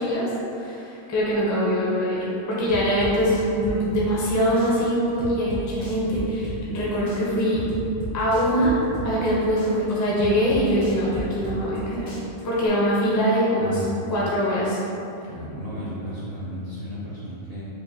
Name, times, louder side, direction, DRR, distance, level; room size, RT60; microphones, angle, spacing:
voice 1, 0.0-7.6 8.1-8.7 9.0-12.1 12.4-13.8 14.1-14.8, equal, 20° left, -7 dB, 0.4 m, -23 dB
sound 1, 2.7-4.3 4.6-6.8 7.1-9.3 9.6-11.8 12.1-12.7, right 1 dB, 60° left, 1.1 m, -34 dB
voice 2, 13.6-13.9 15.2-17.6, equal, 60° right, -7 dB, 0.7 m, -34 dB
4.7 x 2.5 x 2.8 m, 2.9 s
omnidirectional pair, 1.4 m